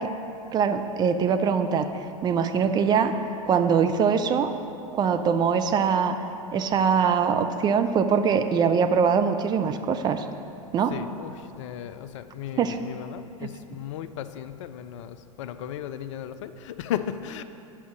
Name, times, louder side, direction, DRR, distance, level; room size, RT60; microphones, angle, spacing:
voice 1, 0.5-1.9 2.2-3.1 3.5-4.5 4.9-6.2 6.5-10.3 10.7-10.9 12.6-12.8, right 6 dB, 20° right, 8 dB, 0.4 m, -22 dB
voice 2, 10.8-17.4, left 10 dB, 55° left, 11 dB, 0.4 m, -36 dB
8.5 x 5.3 x 6.1 m, 2.6 s
figure-of-eight pair, 90°, 19 cm